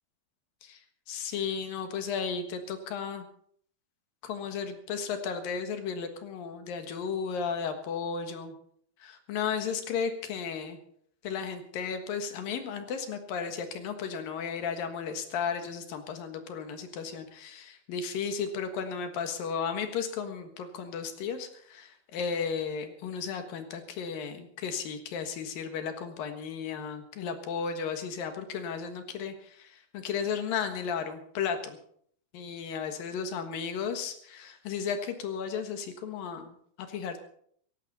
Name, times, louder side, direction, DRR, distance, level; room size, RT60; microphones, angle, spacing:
voice 1, 1.1-3.3 4.2-8.5 9.0-10.8 11.2-31.8 32.3-37.2, left 6 dB, 70° left, 7 dB, 3.1 m, -34 dB
17.5 x 16.0 x 4.1 m, 0.63 s
omnidirectional pair, 4.3 m